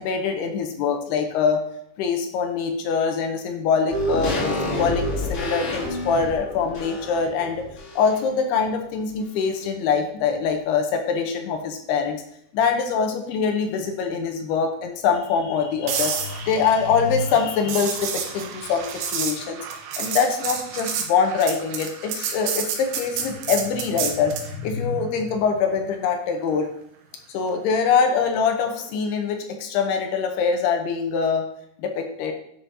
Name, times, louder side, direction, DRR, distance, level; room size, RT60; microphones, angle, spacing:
voice 1, 0.0-1.6 2.0-5.0 5.3-7.6 8.0-12.2 12.5-19.6 20.0-26.7 27.3-31.5 31.8-32.3, left 6 dB, 75° left, 4 dB, 2.7 m, -23 dB
sound 1, 3.9-8.4 8.7-8.8, left 1 dB, 60° left, 1.4 m, -28 dB
sound 2, 15.9-24.5 28.7-28.9, right 7 dB, 85° right, 3.1 m, -30 dB
10.0 x 6.2 x 2.8 m, 0.72 s
omnidirectional pair, 5.0 m